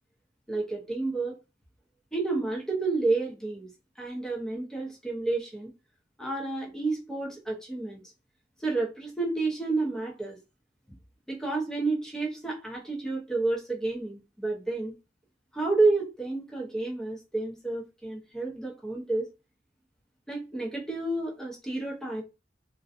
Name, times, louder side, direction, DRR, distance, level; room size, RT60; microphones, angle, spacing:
voice 1, 0.5-1.4 2.1-3.7 4.0-5.7 6.2-8.0 8.6-10.4 11.3-14.9 15.5-19.3 20.3-22.2, right 3 dB, 5° left, 0.6 m, -30 dB
2.5 x 2.2 x 2.4 m
head